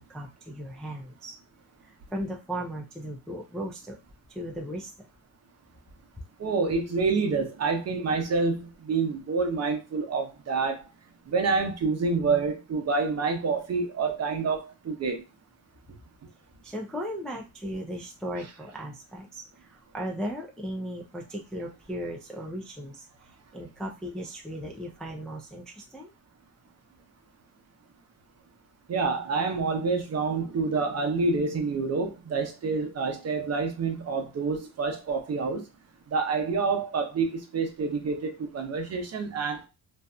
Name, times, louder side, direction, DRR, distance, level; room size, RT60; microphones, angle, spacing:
voice 1, 0.0-1.3 2.1-4.0 4.4-4.9 16.6-19.4 19.9-23.0 23.5-26.1, equal, ahead, 0.3 m, -36 dB
voice 2, 6.4-10.8 11.3-15.2 28.9-35.6 36.1-39.7, right 4 dB, 40° right, 0.7 m, -27 dB
2.6 x 2.5 x 2.2 m
cardioid pair, 100°, 38 cm